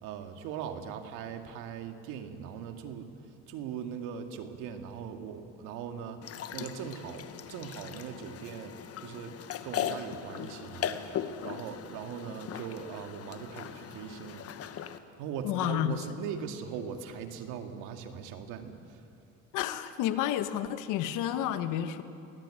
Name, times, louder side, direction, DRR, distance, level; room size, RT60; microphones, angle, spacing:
voice 1, 0.0-3.1 3.5-6.2 6.5-9.3 9.6-11.0 11.4-14.7 15.2-19.0, right 7 dB, 85° right, 6 dB, 2.1 m, -40 dB
sound 1, 6.2-15.0, left 9 dB, 50° left, 1.3 m, -39 dB
voice 2, 15.4-16.0 19.5-22.0, left 11 dB, 80° left, 10 dB, 1.4 m, -30 dB
22.5 x 18.0 x 8.9 m, 2.6 s
cardioid pair, 105°, 30 cm